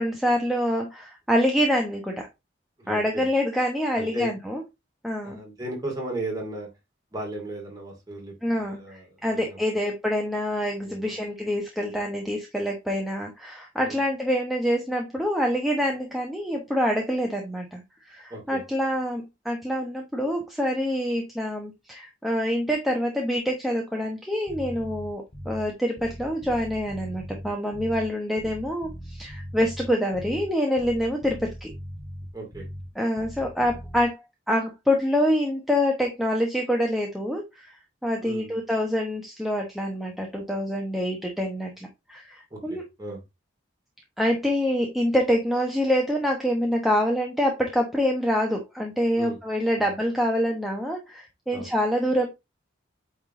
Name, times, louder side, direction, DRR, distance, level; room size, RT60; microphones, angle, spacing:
voice 1, 0.0-2.3 2.9-4.6 5.0-5.4 8.4-17.8 18.1-31.7 33.0-34.2 34.5-37.7 38.0-42.8 44.2-52.3, equal, ahead, 0 dB, 1.0 m, -26 dB
voice 2, 2.8-3.3 3.9-4.3 5.2-6.7 7.1-9.6 10.8-11.2 13.8-14.0 18.3-18.6 32.3-32.7 38.2-38.6 42.5-43.2 49.1-49.4 49.8-49.9 51.5-51.7, right 1 dB, 20° right, 0 dB, 2.6 m, -36 dB
Bass guitar, 24.5-25.7 26.0-28.1 28.4-30.5 30.8-32.9 33.2-34.0, equal, 30° left, 1.6 m, -39 dB
8.7 x 3.7 x 3.7 m, 0.22 s
head